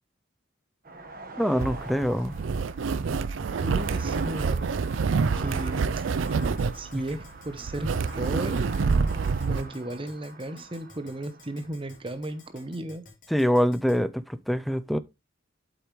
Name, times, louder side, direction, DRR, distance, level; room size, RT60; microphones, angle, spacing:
sound 1, 0.8-12.8, right 2 dB, 45° right, 1.4 m, -43 dB
voice 1, 1.4-2.3 13.3-15.0, equal, ahead, 0.4 m, -24 dB
sound 2, 1.6-9.6, right 5 dB, 70° right, 0.4 m, -27 dB
voice 2, 3.6-4.7 5.1-6.1 6.7-7.9 8.2-8.7 9.5-13.0, right 1 dB, 25° right, 0.9 m, -35 dB
Keyboard (musical), 6.1-14.0, left 3 dB, 40° left, 3.8 m, -51 dB
8.2 x 8.0 x 3.1 m
head